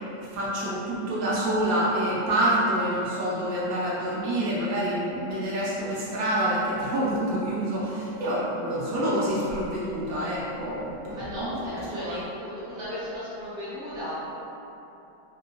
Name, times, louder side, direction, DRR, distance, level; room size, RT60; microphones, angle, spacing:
voice 1, 0.3-11.6 12.1-12.2, right 1 dB, 80° right, -7 dB, 1.0 m, -27 dB
voice 2, 11.1-14.1, equal, 45° right, -13 dB, 1.0 m, -35 dB
3.5 x 2.5 x 2.7 m, 2.9 s
omnidirectional pair, 1.5 m